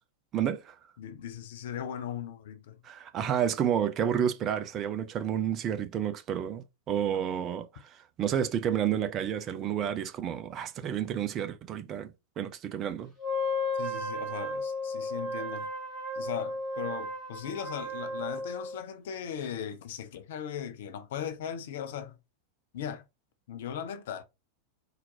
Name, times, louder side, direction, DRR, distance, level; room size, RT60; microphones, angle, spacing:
voice 1, 0.3-0.7 2.8-13.1, right 9 dB, 30° right, 0.6 m, -30 dB
voice 2, 1.0-2.8 13.8-15.7 16.1-22.2 22.7-23.0 23.5-24.2, left 9 dB, 55° left, 0.8 m, -38 dB
Wind instrument woodwind instrument, 13.2-18.8, left 1 dB, ahead, 2.4 m, -34 dB
4.3 x 3.9 x 2.7 m
figure-of-eight pair, 90°, 0 cm